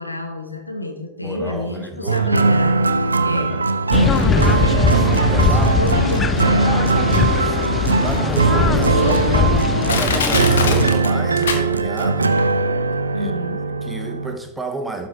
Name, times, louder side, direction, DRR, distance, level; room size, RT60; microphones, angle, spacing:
voice 1, 0.0-3.6 4.0-4.8 5.2-6.7 8.9-9.4 9.7-9.8 13.1-13.6, left 1 dB, 85° left, 1.1 m, -29 dB
voice 2, 1.2-2.5 3.3-3.7 5.3-5.8 7.1-9.6 9.9-12.4 13.1-13.3 13.7-15.1, right 2 dB, 5° right, 1.0 m, -31 dB
sound 1, 2.1-14.4, right 4 dB, 75° right, 0.4 m, -19 dB
sound 2, 3.9-10.9, left 5 dB, 15° left, 0.4 m, -20 dB
Crushing, 7.8-7.9 8.5-8.6 9.3-9.4 9.9-12.1 12.4-12.5, left 5 dB, 65° left, 1.0 m, -24 dB
12.0 x 5.2 x 3.3 m
figure-of-eight pair, 90°, 0 cm